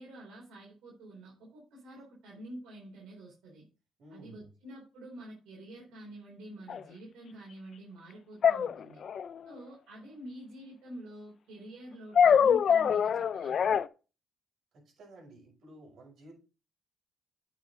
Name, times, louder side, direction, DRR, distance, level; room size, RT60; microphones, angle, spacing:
voice 1, 0.0-3.6 4.1-9.0 9.5-13.8, right 1 dB, 85° right, 3.9 m, -48 dB
voice 2, 4.0-4.5 14.7-16.4, right 1 dB, 65° right, 5.8 m, -53 dB
sound 1, 6.7-6.8 8.4-9.4 12.2-13.9, left 7 dB, 55° left, 0.5 m, -24 dB
9.0 x 6.4 x 3.8 m
cardioid pair, 90°, 0 cm